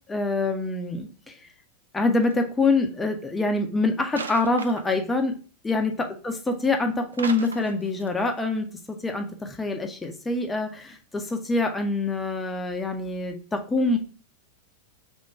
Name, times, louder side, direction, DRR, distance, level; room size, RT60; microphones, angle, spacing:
voice 1, 0.1-1.5 1.9-5.3 5.6-14.0, left 2 dB, 10° left, 4 dB, 0.5 m, -25 dB
sound 1, 2.2-2.4 4.1-5.1 7.1-8.1 8.4-8.5, right 4 dB, 70° right, 0.3 m, -37 dB
3.5 x 2.2 x 4.4 m, 0.38 s
figure-of-eight pair, 90°, 0 cm